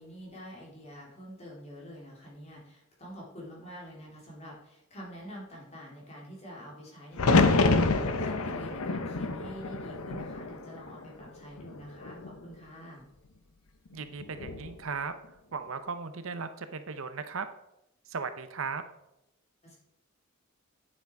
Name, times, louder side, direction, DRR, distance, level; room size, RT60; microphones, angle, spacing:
voice 1, 0.0-7.8 8.2-13.0 19.6-19.7, equal, 30° left, -4 dB, 3.3 m, -46 dB
sound 1, 7.2-11.2 11.6-12.3 14.2-14.7, left 3 dB, 85° left, 0.9 m, -27 dB
voice 2, 13.9-15.1 15.5-17.5 18.1-18.8, right 5 dB, 70° right, 10 dB, 0.7 m, -36 dB
9.2 x 7.4 x 4.7 m, 0.88 s
head